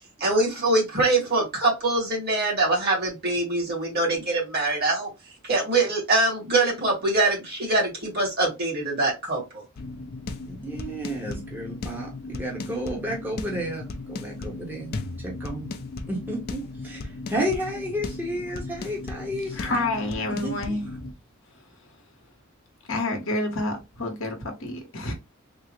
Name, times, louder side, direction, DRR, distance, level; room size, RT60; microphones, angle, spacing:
voice 1, 0.2-5.1 5.4-9.6, right 2 dB, 50° right, 1.9 m, -23 dB
sound 1, 9.7-21.1, left 3 dB, 50° left, 0.4 m, -36 dB
voice 2, 10.5-15.7 16.1-17.0 17.3-19.8 20.3-20.8, equal, 10° right, 0.9 m, -32 dB
voice 3, 19.5-21.1 21.5-21.6 22.9-25.1, left 2 dB, 65° left, 0.9 m, -29 dB
3.6 x 2.0 x 2.9 m
head